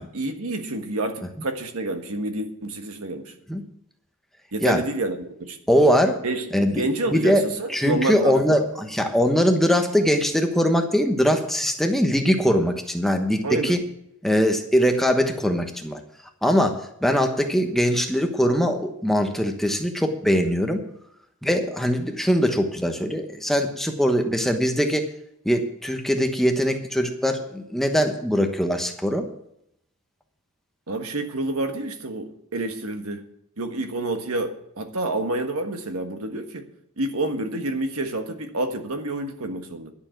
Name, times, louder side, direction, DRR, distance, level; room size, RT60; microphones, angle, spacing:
voice 1, 0.0-3.3 4.5-5.6 6.2-6.5 6.7-8.6 13.4-13.8 30.9-33.2 33.6-36.6 37.0-39.9, right 2 dB, 75° right, 6 dB, 1.5 m, -28 dB
voice 2, 5.7-6.2 6.5-13.8 14.2-16.0 16.4-20.8 21.4-25.1 25.4-29.3, equal, ahead, 4 dB, 1.1 m, -22 dB
11.0 x 7.1 x 9.0 m, 0.75 s
head